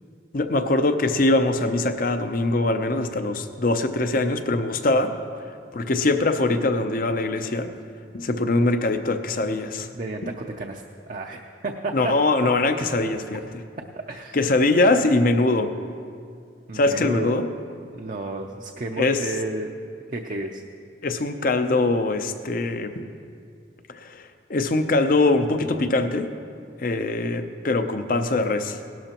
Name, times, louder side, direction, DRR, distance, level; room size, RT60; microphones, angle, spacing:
voice 1, 0.3-5.1 5.7-7.7 8.1-9.9 10.2-10.3 11.9-13.6 14.3-15.7 16.7-17.5 19.0-19.2 21.0-23.0 23.9-26.3 26.8-28.8, left 2 dB, 50° left, 8 dB, 0.6 m, -22 dB
voice 2, 9.9-12.1 14.1-14.4 16.7-17.3 17.9-19.7 20.1-20.6, right 2 dB, 45° right, 1 dB, 0.5 m, -31 dB
17.5 x 12.0 x 3.0 m, 2.3 s
head